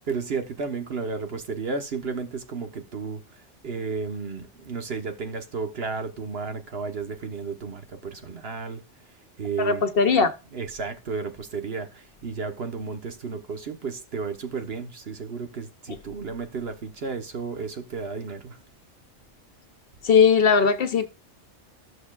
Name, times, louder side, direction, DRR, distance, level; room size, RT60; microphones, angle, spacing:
voice 1, 0.0-9.8 10.5-18.6, right 4 dB, 60° right, 1.3 m, -33 dB
voice 2, 9.6-10.3 20.0-21.1, left 6 dB, 55° left, 0.9 m, -19 dB
14.0 x 6.6 x 2.4 m
omnidirectional pair, 1.2 m